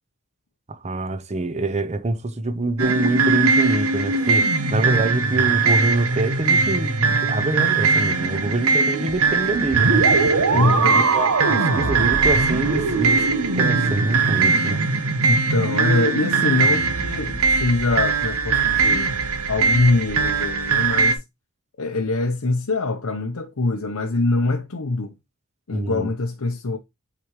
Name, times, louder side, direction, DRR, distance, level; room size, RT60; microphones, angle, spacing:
voice 1, 0.7-10.1 10.5-13.3 13.5-14.8 25.7-26.1, right 2 dB, 30° right, 0.8 m, -25 dB
sound 1, 2.8-21.1, right 4 dB, 85° right, 1.1 m, -20 dB
sound 2, 4.1-12.1, left 5 dB, 50° right, 4.3 m, -44 dB
voice 2, 10.5-11.0 15.3-19.1 19.5-21.2 21.8-25.1 25.7-26.8, left 2 dB, 80° left, 0.8 m, -23 dB
8.4 x 5.1 x 3.1 m
head